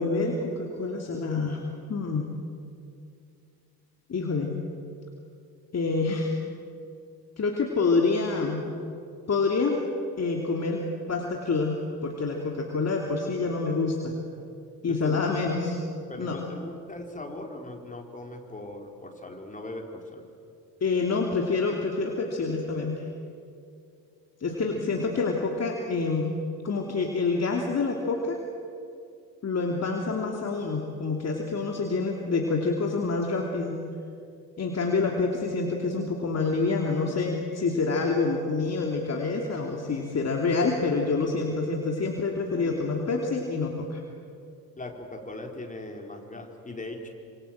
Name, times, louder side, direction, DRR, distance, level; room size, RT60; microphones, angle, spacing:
voice 1, 0.0-1.6 1.9-2.3 4.1-4.5 5.7-6.3 7.4-8.6 9.3-9.8 10.2-10.8 11.1-14.1 14.8-15.7 16.2-16.4 20.8-23.0 24.4-26.3 26.6-28.4 29.4-33.8 34.6-44.0, left 4 dB, 30° left, 1 dB, 3.0 m, -27 dB
voice 2, 14.9-15.5 16.1-20.3 24.5-24.7 42.6-42.9 44.7-47.1, left 2 dB, 15° left, 2 dB, 4.7 m, -39 dB
26.5 x 26.0 x 7.7 m, 2.5 s
figure-of-eight pair, 55°, 49 cm